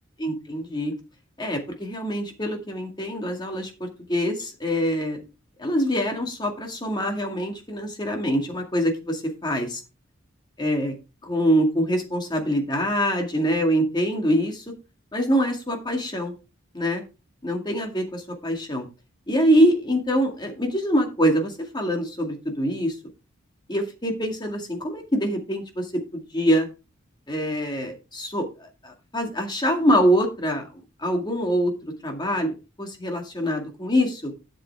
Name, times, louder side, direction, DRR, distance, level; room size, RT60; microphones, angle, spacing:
voice 1, 0.2-0.9 1.4-5.2 5.6-9.8 10.6-11.0 11.2-14.6 15.1-16.3 16.7-17.0 17.4-18.9 19.3-23.0 23.7-26.7 27.3-30.6 31.0-31.7 32.0-34.3, equal, 20° left, 3 dB, 2.1 m, -24 dB
12.0 x 7.1 x 3.4 m, 0.29 s
head